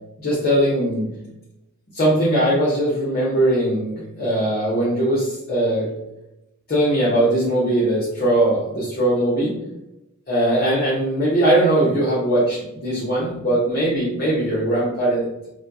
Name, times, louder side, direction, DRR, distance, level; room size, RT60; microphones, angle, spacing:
voice 1, 0.2-1.1 1.9-5.9 6.7-9.5 10.3-15.3, right 1 dB, 45° left, -8 dB, 1.0 m, -20 dB
3.2 x 2.3 x 3.9 m, 0.90 s
head